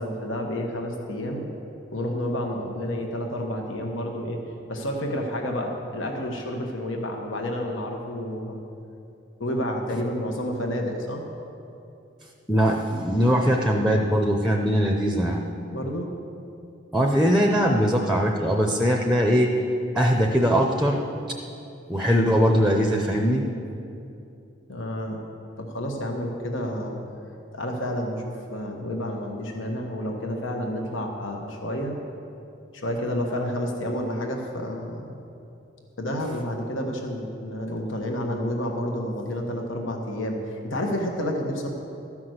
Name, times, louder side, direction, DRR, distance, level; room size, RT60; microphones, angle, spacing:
voice 1, 0.0-1.5 1.9-4.4 4.7-8.6 9.4-11.2 15.7-16.1 24.7-25.2 25.6-27.0 27.5-32.0 32.7-35.2 36.0-41.7, left 1 dB, 85° left, 1 dB, 1.3 m, -30 dB
voice 2, 12.5-15.4 16.9-19.5 19.9-21.0 21.9-23.4, equal, ahead, 2 dB, 0.6 m, -21 dB
13.0 x 6.0 x 7.9 m, 2.7 s
head